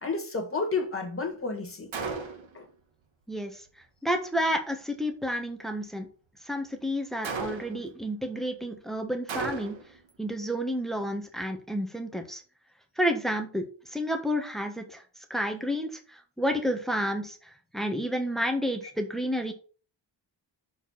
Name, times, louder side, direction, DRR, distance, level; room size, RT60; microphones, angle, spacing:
voice 1, 0.0-1.9 2.5-2.7, left 4 dB, 30° left, 2.1 m, -31 dB
Gunshot gunfire, 1.9-2.6 7.2-7.9 9.3-10.0, right 4 dB, 75° right, 1.6 m, -34 dB
voice 2, 3.3-3.6 4.0-6.1 6.4-9.8 10.2-12.4 13.0-15.0 15.3-19.5, equal, ahead, 1.2 m, -30 dB
6.7 x 4.6 x 5.7 m
wide cardioid pair, 135°, 46 cm